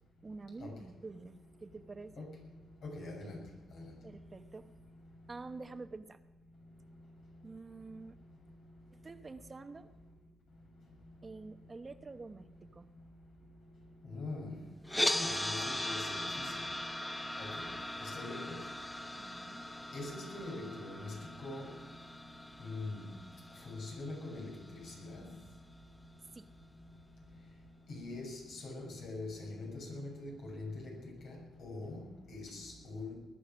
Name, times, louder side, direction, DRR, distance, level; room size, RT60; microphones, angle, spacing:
voice 1, 0.2-2.2 4.0-4.9 5.3-6.2 7.4-8.2 8.9-9.9 11.2-12.9 19.2-19.7 26.3-26.5, right 3 dB, 30° right, 9 dB, 1.0 m, -48 dB
voice 2, 2.8-3.4 3.7-3.8 14.1-14.6 15.1-16.6 17.4-17.6 18.0-18.6 19.9-21.7 22.6-23.1 23.6-25.3 27.9-31.0 31.2-33.2, left 2 dB, 80° left, 0 dB, 7.1 m, -43 dB
sound 1, 14.9-25.0, left 1 dB, 10° left, 1.3 m, -39 dB
20.5 x 11.0 x 6.3 m, 1.1 s
cardioid pair, 90°, 0 cm